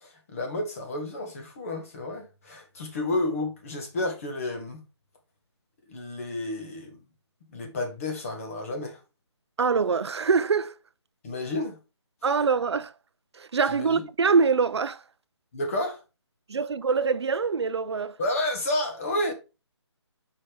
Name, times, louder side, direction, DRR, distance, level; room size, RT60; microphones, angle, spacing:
voice 1, 0.0-4.8 5.9-7.0 7.5-9.0 11.2-11.8 13.7-14.1 15.5-16.0 18.2-19.3, left 1 dB, 30° left, 1.7 m, -31 dB
voice 2, 9.6-10.8 12.2-12.9 13.4-15.0 16.5-18.2, right 5 dB, 65° right, 0.6 m, -24 dB
5.5 x 5.0 x 5.1 m
hypercardioid pair, 170°, 15 cm